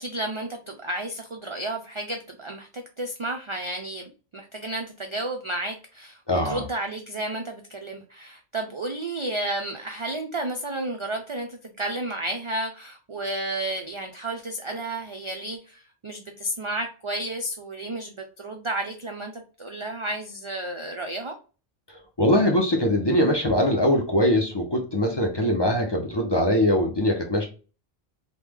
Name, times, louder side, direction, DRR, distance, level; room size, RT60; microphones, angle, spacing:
voice 1, 0.0-6.2 6.4-21.4, right 1 dB, 55° right, 4 dB, 0.3 m, -32 dB
voice 2, 6.3-6.6 22.2-27.5, left 1 dB, 35° left, 1 dB, 0.5 m, -22 dB
3.1 x 2.1 x 3.4 m, 0.35 s
omnidirectional pair, 1.0 m